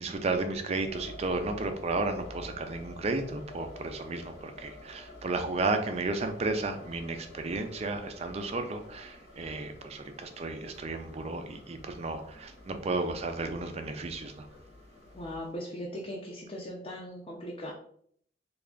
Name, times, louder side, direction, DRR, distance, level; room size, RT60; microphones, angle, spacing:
voice 1, 0.0-14.5, right 3 dB, 35° right, 7 dB, 0.4 m, -33 dB
sound 1, 0.8-15.4, left 2 dB, 90° left, 1.3 m, -50 dB
voice 2, 15.1-17.7, equal, 30° left, -3 dB, 0.5 m, -39 dB
3.2 x 2.4 x 3.6 m, 0.64 s
head